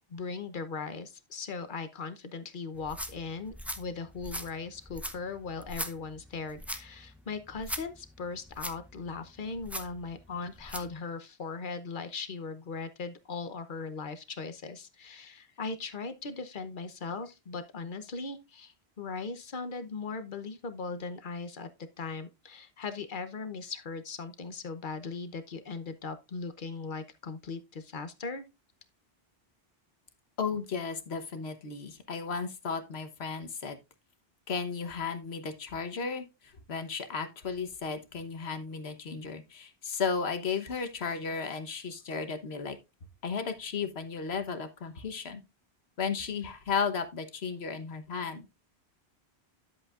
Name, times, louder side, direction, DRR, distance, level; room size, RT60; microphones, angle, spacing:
voice 1, 0.1-21.7 22.0-28.4, left 4 dB, 50° left, 1.0 m, -39 dB
sound 1, 2.7-10.9, equal, ahead, 0.5 m, -42 dB
voice 2, 30.4-33.8 34.5-42.8 43.2-45.4 46.0-48.6, left 5 dB, 75° left, 1.4 m, -34 dB
10.5 x 7.9 x 2.5 m
omnidirectional pair, 1.1 m